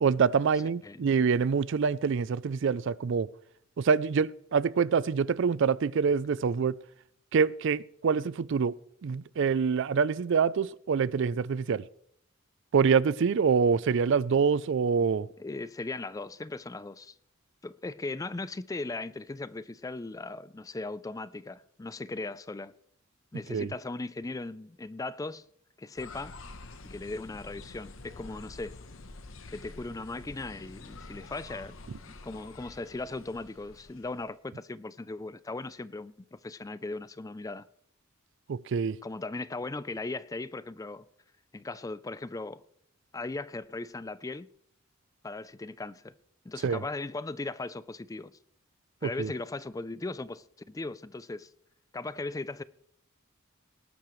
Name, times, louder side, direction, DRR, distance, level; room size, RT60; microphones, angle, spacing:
voice 1, 0.0-3.3 3.8-6.8 7.3-8.7 9.0-11.8 12.7-15.3 23.5-23.7 38.5-39.0 46.6-46.8 49.0-49.3, right 6 dB, 60° right, 0.4 m, -26 dB
voice 2, 0.8-1.2 15.4-17.2 17.6-22.7 23.3-25.4 25.8-26.3 26.8-28.8 29.5-31.8 32.1-37.7 39.0-41.1 41.5-42.6 43.1-44.5 45.2-46.1 46.4-48.3 49.0-51.5 51.9-52.6, left 2 dB, 15° left, 0.4 m, -38 dB
sound 1, 26.0-34.4, left 3 dB, 70° left, 1.0 m, -48 dB
19.0 x 11.5 x 3.1 m
head